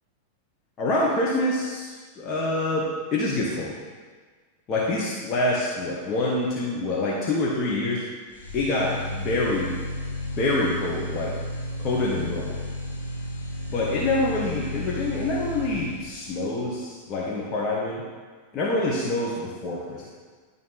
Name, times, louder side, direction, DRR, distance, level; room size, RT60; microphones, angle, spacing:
voice 1, 0.8-3.7 4.7-8.0 8.5-9.7 10.4-11.3 11.8-12.6 13.7-18.0 18.5-20.1, left 2 dB, 30° left, -4 dB, 1.1 m, -26 dB
sound 1, 8.3-16.3, left 2 dB, 70° left, 1.3 m, -33 dB
10.5 x 3.6 x 3.9 m, 1.5 s
figure-of-eight pair, 90°, 0 cm